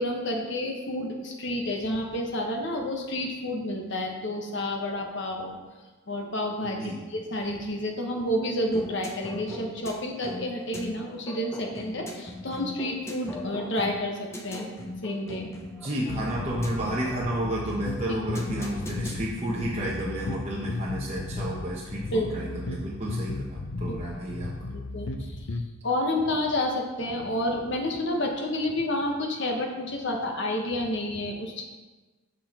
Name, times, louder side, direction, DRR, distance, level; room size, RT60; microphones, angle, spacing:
voice 1, 0.0-5.6 6.1-6.8 7.1-14.7 15.0-15.5 22.1-22.5 23.9-24.0 24.7-25.5 25.8-31.6, left 1 dB, 60° left, 1 dB, 1.3 m, -30 dB
voice 2, 6.6-7.0 15.8-24.5, right 1 dB, 30° right, -5 dB, 1.0 m, -32 dB
sound 1, 8.7-20.5, left 1 dB, 15° left, 0.8 m, -40 dB
sound 2, 16.1-25.7, left 2 dB, 80° left, 0.7 m, -35 dB
8.3 x 6.0 x 4.3 m, 1.3 s
head